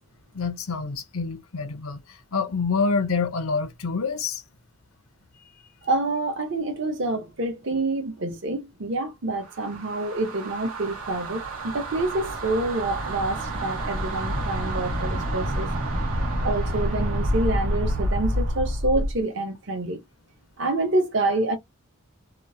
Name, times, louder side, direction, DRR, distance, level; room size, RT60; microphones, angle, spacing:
voice 1, 0.3-2.0 2.3-4.4, left 4 dB, 85° left, 0.6 m, -26 dB
voice 2, 5.9-15.7 16.4-20.0 20.6-21.6, right 2 dB, 60° right, 0.8 m, -27 dB
sound 1, 9.4-19.2, right 1 dB, 90° right, 1.1 m, -28 dB
2.9 x 2.0 x 2.6 m
head